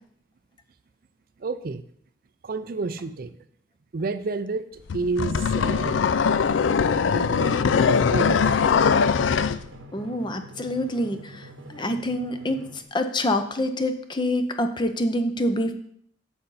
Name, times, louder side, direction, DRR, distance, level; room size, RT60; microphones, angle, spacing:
voice 1, 1.4-1.8 2.4-3.3 3.9-6.1 7.1-8.6, right 3 dB, 50° right, 12 dB, 0.4 m, -30 dB
sound 1, 4.9-9.6, left 6 dB, 85° left, 0.4 m, -21 dB
Drum, 6.7-12.8, right 1 dB, 90° right, 1.1 m, -44 dB
voice 2, 9.9-11.4 11.7-15.7, left 1 dB, 25° left, 8 dB, 0.6 m, -26 dB
8.5 x 6.7 x 4.0 m, 0.64 s
head